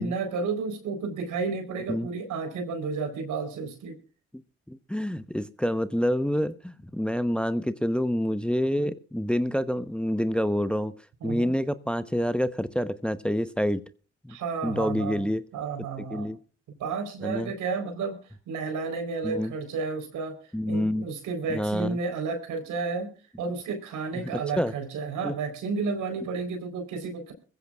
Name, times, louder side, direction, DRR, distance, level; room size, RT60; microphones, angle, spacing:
voice 1, 0.0-4.0 11.2-11.5 14.3-15.2 15.5-16.3 16.8-18.2 18.5-20.4 20.6-23.1 23.4-27.3, right 4 dB, 75° right, 6 dB, 4.0 m, -32 dB
voice 2, 4.7-10.9 11.2-13.8 14.2-14.4 14.6-15.4 16.0-16.4 17.2-17.5 19.2-19.5 20.5-21.1 21.5-22.0 24.2-24.3 24.5-24.7 25.2-25.3, equal, 5° left, 13 dB, 0.9 m, -27 dB
21.5 x 15.5 x 2.4 m, 0.37 s
supercardioid pair, 50°, 31 cm